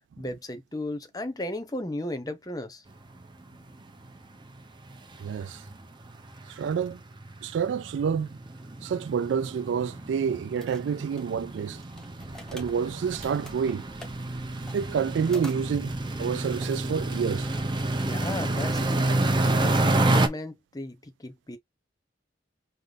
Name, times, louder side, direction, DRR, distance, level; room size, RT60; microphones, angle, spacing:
voice 1, 0.2-2.8 18.0-18.8 19.6-21.6, left 1 dB, 20° left, 0.8 m, -35 dB
sound 1, 3.2-3.3 3.5-3.7 4.1-4.2 4.4-20.3, right 2 dB, 25° right, 0.7 m, -29 dB
voice 2, 5.2-5.6 6.5-7.0 7.4-8.4 8.8-11.8 12.5-13.9 14.7-15.9 16.2-17.5, right 7 dB, 90° right, 0.3 m, -28 dB
sound 2, 10.3-11.3 11.7-14.1 14.6-15.6 16.6-16.7 17.1-18.2, left 1 dB, 5° left, 1.1 m, -47 dB
5.1 x 2.2 x 3.9 m
head